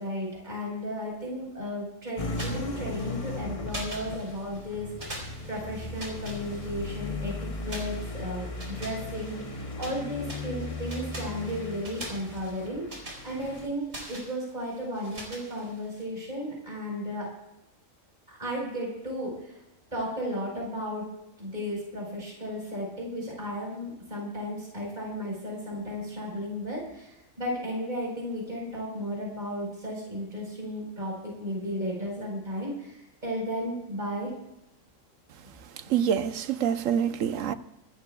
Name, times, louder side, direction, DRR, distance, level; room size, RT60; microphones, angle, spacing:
voice 1, 0.0-17.3 18.3-19.6 19.9-21.1 21.4-34.3, equal, 35° right, 4.9 m, -34 dB
sound 1, 2.2-13.7, left 2 dB, 30° left, 0.9 m, -37 dB
sound 2, 2.2-3.3 3.7-4.7 5.0-7.1 7.7-10.0 10.3-16.0, right 1 dB, 55° right, 4.5 m, -43 dB
voice 2, 35.8-37.5, right 8 dB, 80° right, 1.1 m, -26 dB
25.5 x 13.5 x 2.4 m
omnidirectional pair, 1.3 m